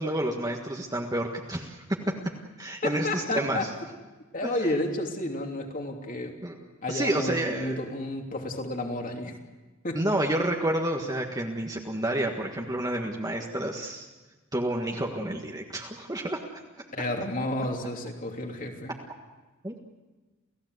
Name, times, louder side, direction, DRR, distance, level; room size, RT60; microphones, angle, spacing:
voice 1, 0.0-1.8 2.6-3.6 6.4-6.5 6.9-7.8 9.9-14.1 14.5-16.5 19.6-19.8, right 1 dB, 15° right, 0 dB, 1.6 m, -29 dB
voice 2, 2.8-3.7 4.3-6.4 6.8-9.4 9.8-10.1 16.9-18.9, left 1 dB, 40° left, 2 dB, 3.1 m, -31 dB
29.0 x 16.5 x 8.0 m, 1.2 s
head